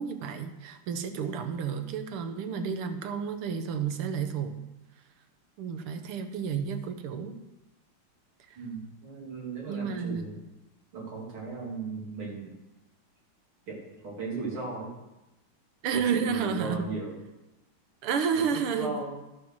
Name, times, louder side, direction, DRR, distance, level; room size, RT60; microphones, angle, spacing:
voice 1, 0.0-4.6 5.6-7.4 8.5-8.6 9.7-10.3 15.8-16.9 18.0-19.0, right 6 dB, 90° right, 8 dB, 1.8 m, -31 dB
voice 2, 8.6-10.4 10.9-12.5 13.7-15.0 15.9-17.2 18.3-19.2, right 4 dB, 70° right, -4 dB, 3.7 m, -37 dB
12.0 x 6.5 x 6.2 m, 0.98 s
omnidirectional pair, 2.4 m